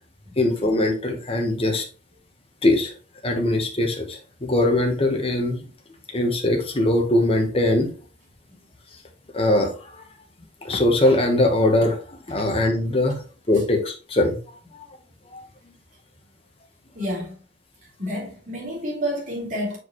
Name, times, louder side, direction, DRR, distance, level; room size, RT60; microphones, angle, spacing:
voice 1, 0.4-1.8 2.6-2.9 3.2-5.6 6.1-7.9 9.3-9.7 10.6-13.2 13.5-14.4 14.7-14.9 15.3-15.4, left 1 dB, 30° left, 1.3 m, -21 dB
voice 2, 16.9-17.3 18.0-19.8, equal, 45° right, 3.1 m, -29 dB
6.4 x 5.0 x 3.1 m
head